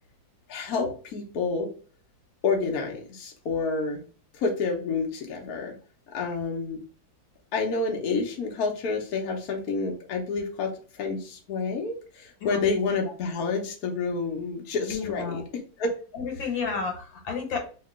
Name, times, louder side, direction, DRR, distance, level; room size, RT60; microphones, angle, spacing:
voice 1, 0.5-1.7 2.4-4.0 4.3-5.8 6.1-6.8 7.5-15.9, left 4 dB, 60° left, 1 dB, 1.1 m, -29 dB
voice 2, 14.9-15.5 16.1-17.6, left 5 dB, 80° left, 2 dB, 1.6 m, -31 dB
2.9 x 2.8 x 3.4 m, 0.39 s
omnidirectional pair, 2.1 m